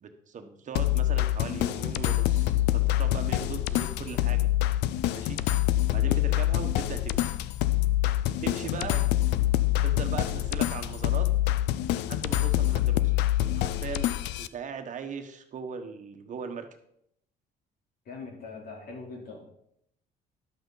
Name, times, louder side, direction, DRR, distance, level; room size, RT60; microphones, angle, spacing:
voice 1, 0.0-4.5 5.1-5.4 5.9-7.3 8.4-9.0 9.8-11.3 11.9-13.1 13.4-16.7, right 6 dB, 50° right, 6 dB, 1.2 m, -39 dB
sound 1, 0.7-14.5, left 14 dB, 85° left, 0.5 m, -26 dB
voice 2, 8.6-9.0 18.1-19.4, left 4 dB, 65° left, 0 dB, 3.5 m, -41 dB
11.0 x 7.9 x 4.0 m, 0.74 s
cardioid pair, 110°, 17 cm